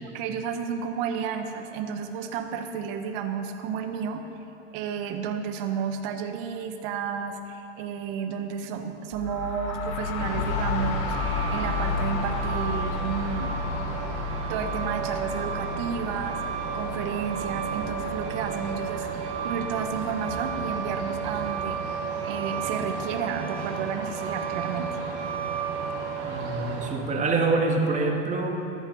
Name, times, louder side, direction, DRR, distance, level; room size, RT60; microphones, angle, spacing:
voice 1, 0.1-4.2 4.7-13.6 14.5-16.4 16.7-21.8 22.2-25.0, right 7 dB, 50° right, 7 dB, 1.5 m, -32 dB
sound 1, 9.1-20.8, left 4 dB, 45° left, 1.5 m, -33 dB
Truck, 10.2-26.9, right 5 dB, 65° right, 3.1 m, -32 dB
voice 2, 26.2-28.6, right 3 dB, 20° right, 2 dB, 1.8 m, -25 dB
14.0 x 13.5 x 5.6 m, 2.9 s
supercardioid pair, 125°, 36 cm